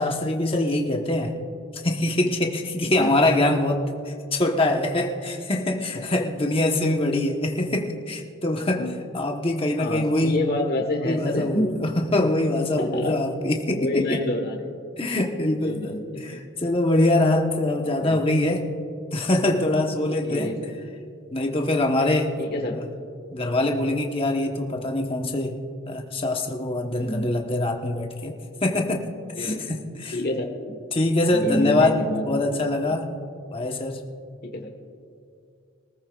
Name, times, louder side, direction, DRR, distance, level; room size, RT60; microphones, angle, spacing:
voice 1, 0.0-1.3 1.7-8.8 9.1-10.4 11.0-14.2 15.0-18.6 19.1-20.5 21.3-22.4 22.7-22.8 23.3-25.5 25.9-28.3 28.6-29.0 29.4-30.2 30.9-33.1 33.5-34.0, left 1 dB, 25° left, 2 dB, 1.1 m, -24 dB
voice 2, 8.6-8.9 9.8-11.8 12.8-13.2 13.7-14.8 15.6-16.3 17.8-18.2 20.2-20.8 22.4-22.8 26.9-27.3 29.4-29.7 30.1-30.8 31.2-32.4 32.8-33.0 34.4-34.7, left 1 dB, 45° left, 2 dB, 1.4 m, -28 dB
24.5 x 14.0 x 2.4 m, 2.4 s
head